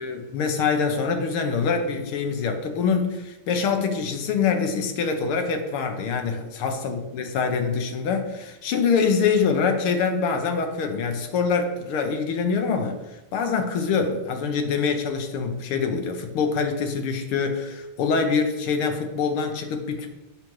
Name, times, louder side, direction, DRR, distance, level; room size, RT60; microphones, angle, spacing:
voice 1, 0.0-20.1, left 5 dB, 80° left, 5 dB, 1.8 m, -25 dB
9.0 x 3.2 x 5.7 m, 0.99 s
omnidirectional pair, 2.4 m